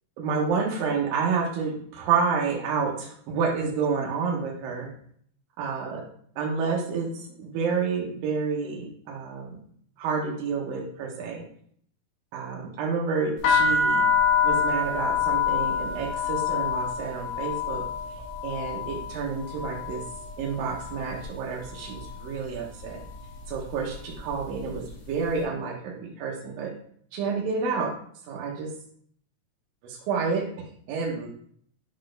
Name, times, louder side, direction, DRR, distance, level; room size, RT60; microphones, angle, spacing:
voice 1, 0.2-4.9 5.6-6.0 6.4-7.1 7.4-9.5 10.0-11.4 12.3-14.0 14.4-17.8 18.4-20.0 20.4-23.0 23.5-26.7 27.1-27.9 28.3-28.7 30.1-30.4 30.9-31.3, right 5 dB, 90° right, -1 dB, 2.6 m, -29 dB
sound 1, 13.4-21.3 21.6-22.2 22.9-23.2 23.4-24.9, left 6 dB, 65° left, 2.3 m, -27 dB
7.3 x 4.1 x 3.2 m, 0.63 s
omnidirectional pair, 3.9 m